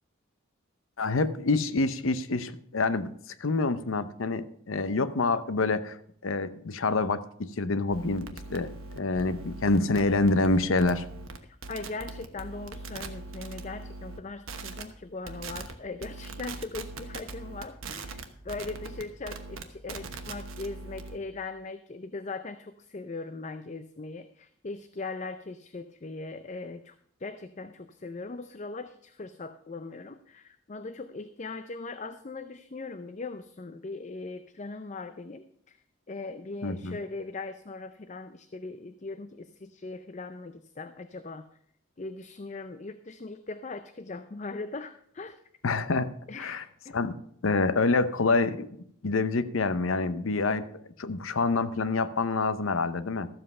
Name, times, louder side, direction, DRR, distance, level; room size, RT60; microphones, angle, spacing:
voice 1, 1.0-3.1 3.4-6.0 6.2-11.0 36.6-37.0 45.6-46.6 46.9-47.2 47.4-48.7 49.0-53.3, left 3 dB, 80° left, 13 dB, 0.7 m, -27 dB
sound 1, 7.9-14.2 14.5-14.8 15.3-15.7 16.0-21.2, right 3 dB, 80° right, 1.1 m, -41 dB
voice 2, 11.4-26.9 27.2-35.8 36.1-41.5 42.0-45.4 46.3-46.9, left 3 dB, 35° left, 10 dB, 0.5 m, -40 dB
13.5 x 7.7 x 5.4 m, 0.65 s
head